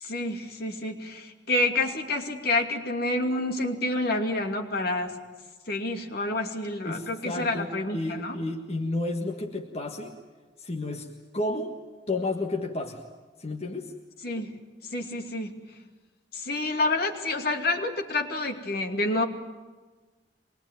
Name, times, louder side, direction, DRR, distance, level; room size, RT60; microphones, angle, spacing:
voice 1, 0.0-5.2 5.7-8.4 14.2-14.6 14.9-15.5 16.3-19.2, left 2 dB, 60° left, 3 dB, 2.6 m, -28 dB
voice 2, 6.8-10.1 10.6-11.1 11.3-11.7 12.1-13.0 13.4-13.9, left 2 dB, 35° left, 1 dB, 1.6 m, -31 dB
25.0 x 21.0 x 9.1 m, 1.3 s
head